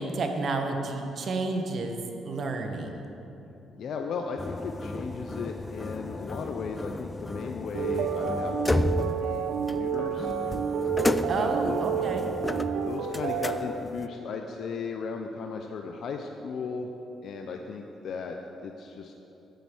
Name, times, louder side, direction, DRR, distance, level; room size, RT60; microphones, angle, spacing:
voice 1, 0.0-2.0 2.2-3.0 11.3-12.3, right 3 dB, 55° right, 4 dB, 1.2 m, -30 dB
voice 2, 3.7-10.3 11.4-11.8 12.8-16.9 17.2-18.3 18.6-19.1, left 5 dB, 65° left, 3 dB, 0.6 m, -36 dB
sound 1, 4.4-14.1, left 2 dB, 15° left, 0.3 m, -33 dB
sound 2, 7.7-13.6, right 7 dB, 90° right, 0.6 m, -30 dB
8.6 x 8.0 x 6.1 m, 3.0 s
cardioid pair, 90°, 0 cm